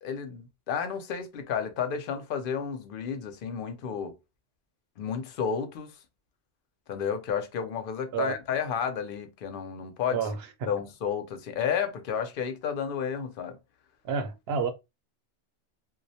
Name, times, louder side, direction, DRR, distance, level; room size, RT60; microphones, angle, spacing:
voice 1, 0.0-4.1 5.0-5.9 6.9-10.2 10.7-13.6, left 7 dB, 60° left, 0.6 m, -31 dB
voice 2, 14.0-14.7, right 6 dB, 65° right, 0.8 m, -29 dB
2.3 x 2.0 x 2.7 m
omnidirectional pair, 1.2 m